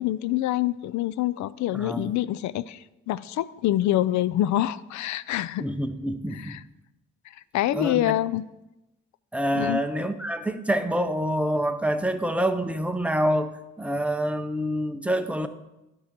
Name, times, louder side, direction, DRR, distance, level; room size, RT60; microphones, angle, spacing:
voice 1, 0.0-5.7 6.3-6.6 7.5-8.4 9.5-9.8, left 13 dB, 70° left, 18 dB, 0.4 m, -26 dB
voice 2, 1.7-2.1 5.6-6.6 7.7-8.1 9.3-13.5 13.8-15.5, equal, 5° right, 8 dB, 0.6 m, -26 dB
11.0 x 3.8 x 6.0 m, 0.95 s
cardioid pair, 90°, 30 cm